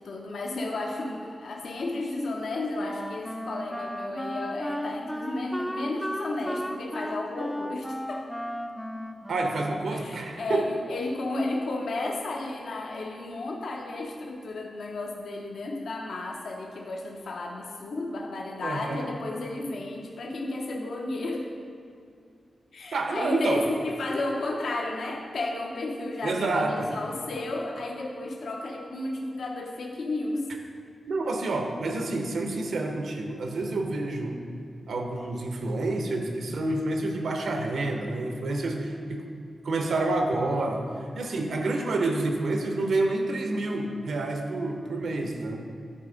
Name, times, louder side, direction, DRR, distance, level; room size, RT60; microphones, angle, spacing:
voice 1, 0.0-8.2 9.9-21.5 22.7-30.5, left 2 dB, 75° left, 0 dB, 0.6 m, -33 dB
Wind instrument woodwind instrument, 2.8-10.2, equal, 5° left, 0.3 m, -35 dB
voice 2, 9.3-10.7 18.6-19.0 22.9-23.6 26.2-26.9 31.1-34.4 34.9-39.2 39.6-40.8 41.1-45.6, right 2 dB, 75° right, 3 dB, 0.8 m, -28 dB
10.0 x 4.3 x 3.9 m, 2.3 s
wide cardioid pair, 110°, 0 cm